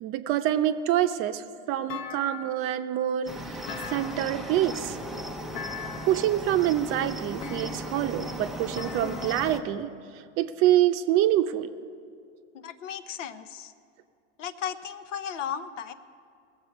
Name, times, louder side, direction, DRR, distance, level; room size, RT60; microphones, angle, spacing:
voice 1, 0.0-3.6 3.9-5.0 6.1-9.9 10.4-11.7, right 12 dB, 35° right, 9 dB, 0.7 m, -26 dB
Thump thud, 1.9-2.8 3.6-4.6 5.5-6.3 7.4-8.1 8.8-9.8, left 8 dB, 45° left, 0.9 m, -40 dB
Cricket, 3.3-9.6, right 1 dB, ahead, 0.4 m, -37 dB
voice 2, 12.5-13.7 14.4-15.9, left 8 dB, 80° left, 9 dB, 0.9 m, -35 dB
20.0 x 7.5 x 5.2 m, 2.4 s
hypercardioid pair, 125°, 37 cm